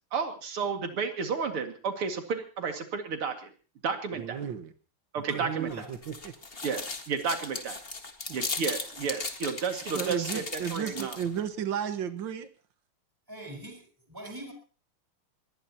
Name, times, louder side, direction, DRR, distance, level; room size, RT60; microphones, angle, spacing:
voice 1, 0.1-3.5 3.8-4.4 5.1-5.9 6.6-7.8 8.3-11.2, right 5 dB, 80° right, 5 dB, 3.1 m, -32 dB
voice 2, 4.1-4.7 5.2-6.3 9.9-12.5, right 8 dB, 60° right, 9 dB, 2.0 m, -34 dB
voice 3, 5.3-5.8 13.3-14.5, right 1 dB, 10° right, 2 dB, 4.5 m, -43 dB
sound 1, 5.7-11.4, left 3 dB, 25° left, 1.8 m, -37 dB
22.5 x 20.0 x 2.9 m, 0.38 s
omnidirectional pair, 2.4 m